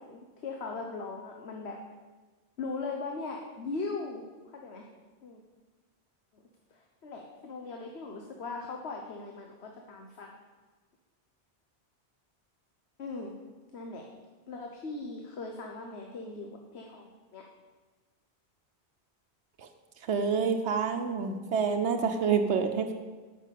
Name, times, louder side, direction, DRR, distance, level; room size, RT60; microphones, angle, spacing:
voice 1, 0.0-1.8 2.6-4.8 5.2-5.4 6.3-6.4 6.7-10.3 13.0-13.3 13.7-14.0 14.5-17.4, left 3 dB, 75° left, 2 dB, 1.4 m, -39 dB
voice 2, 20.0-22.9, right 6 dB, 90° right, 5 dB, 1.2 m, -28 dB
11.5 x 6.4 x 8.3 m, 1.3 s
omnidirectional pair, 1.1 m